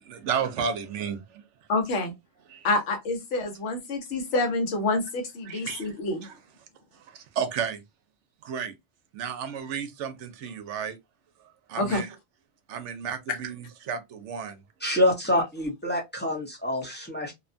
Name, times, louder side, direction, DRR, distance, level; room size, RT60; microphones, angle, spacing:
voice 1, 0.1-1.2 5.5-5.8 6.2-6.3 7.4-7.8 8.5-8.7 9.1-11.0 11.7-12.2 12.7-14.6, right 7 dB, 80° right, 0.9 m, -32 dB
voice 2, 1.7-2.1 2.6-6.3 11.8-12.0, left 2 dB, 75° left, 1.2 m, -27 dB
voice 3, 14.8-17.3, left 1 dB, 10° left, 0.6 m, -26 dB
2.7 x 2.2 x 2.5 m
omnidirectional pair, 1.2 m